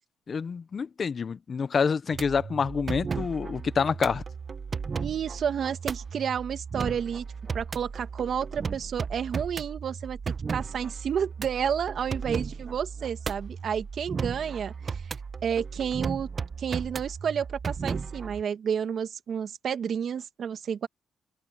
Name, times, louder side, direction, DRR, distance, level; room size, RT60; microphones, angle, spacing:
voice 1, 0.3-4.2, left 5 dB, 45° left, 0.9 m, -27 dB
sound 1, 2.1-18.4, right 5 dB, 40° right, 0.9 m, -35 dB
voice 2, 5.0-7.2 7.5-15.0 15.4-16.3 16.6-20.9, right 8 dB, 55° right, 2.1 m, -31 dB
open air
cardioid pair, 90°, 0 cm